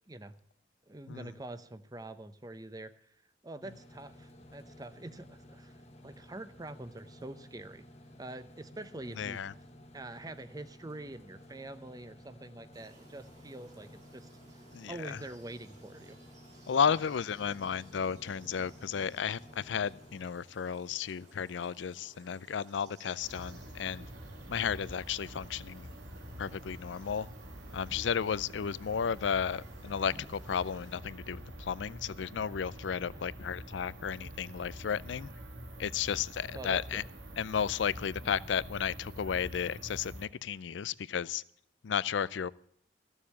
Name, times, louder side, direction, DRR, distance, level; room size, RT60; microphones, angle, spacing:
voice 1, 0.1-0.4 0.9-2.9 3.4-5.7 6.0-7.8 8.2-9.4 9.9-14.3 14.9-16.2 17.5-17.6 36.5-37.0, right 2 dB, 20° right, 12 dB, 0.7 m, -45 dB
sound 1, 3.6-20.2, left 1 dB, 35° left, 1.2 m, -54 dB
voice 2, 9.2-9.5 14.7-15.2 16.7-24.1 24.5-25.9 26.4-27.3 27.7-35.3 35.8-37.0 37.4-41.4 41.8-42.5, left 7 dB, 75° left, 20 dB, 0.4 m, -33 dB
sound 2, 12.7-31.0, right 2 dB, 40° right, 2.3 m, -58 dB
sound 3, 23.2-40.3, equal, 80° right, 1.8 m, -46 dB
15.0 x 7.2 x 8.2 m, 0.71 s
head